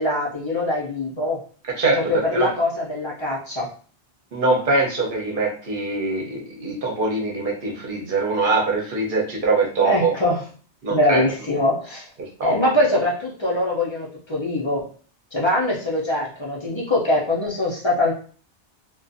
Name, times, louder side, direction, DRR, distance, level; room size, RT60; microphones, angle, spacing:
voice 1, 0.0-1.4 1.9-3.7 9.8-10.4 10.9-12.0 12.4-14.9 15.3-18.1, left 1 dB, 35° left, -4 dB, 0.5 m, -23 dB
voice 2, 4.3-10.1 10.8-11.2 12.4-12.5, right 3 dB, 55° right, -2 dB, 0.9 m, -22 dB
2.4 x 2.3 x 2.5 m, 0.42 s
omnidirectional pair, 1.2 m